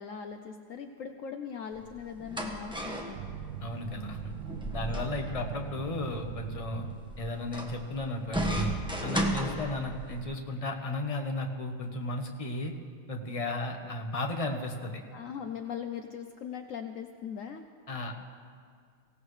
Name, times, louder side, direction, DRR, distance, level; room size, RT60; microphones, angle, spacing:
voice 1, 0.0-3.3 15.1-17.7, left 7 dB, 80° left, 6 dB, 0.7 m, -40 dB
sound 1, 1.7-10.2, right 1 dB, 5° right, 1.0 m, -35 dB
sound 2, 3.1-7.7, right 9 dB, 80° right, 1.3 m, -42 dB
voice 2, 3.6-4.3 4.7-6.9 7.2-8.7 9.0-12.7 13.1-15.0 17.9-18.1, left 2 dB, 25° left, 3 dB, 0.9 m, -34 dB
24.0 x 16.5 x 3.2 m, 2.1 s
omnidirectional pair, 2.1 m